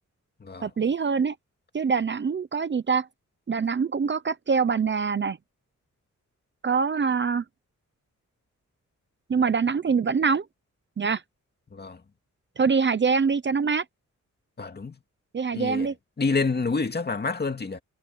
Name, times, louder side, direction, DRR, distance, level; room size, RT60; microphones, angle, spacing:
voice 1, 0.6-1.3 1.7-3.1 3.5-5.4 6.6-7.4 9.3-10.5 11.0-11.2 12.6-13.8 15.3-15.9, right 5 dB, 40° right, 0.7 m, -24 dB
voice 2, 14.6-15.0 15.5-15.9 16.2-17.8, left 4 dB, 35° left, 2.2 m, -28 dB
wide cardioid pair, 155°, 30 cm